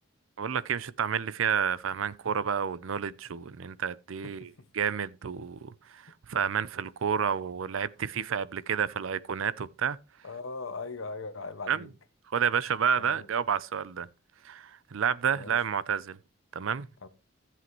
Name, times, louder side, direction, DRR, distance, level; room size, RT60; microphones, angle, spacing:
voice 1, 0.4-10.0 11.7-11.9 12.3-14.1 14.4-16.2 16.5-16.9, right 7 dB, 75° right, 0.5 m, -30 dB
voice 2, 10.2-11.9 13.0-13.3 15.3-15.6 17.0-17.1, left 3 dB, 70° left, 1.0 m, -39 dB
14.0 x 7.6 x 3.0 m
head